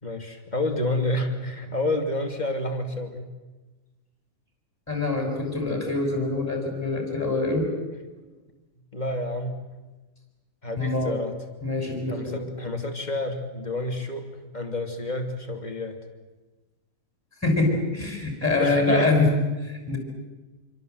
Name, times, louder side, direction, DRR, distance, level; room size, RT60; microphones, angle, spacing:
voice 1, 0.0-3.3 8.9-9.6 10.6-11.4 12.1-16.0 18.6-19.2, left 2 dB, 25° left, 4 dB, 3.1 m, -29 dB
voice 2, 4.9-7.7 10.8-11.1 11.6-12.4 17.4-19.3 19.7-20.0, left 2 dB, 10° left, 2 dB, 6.3 m, -24 dB
27.0 x 24.5 x 8.1 m, 1.2 s
omnidirectional pair, 1.9 m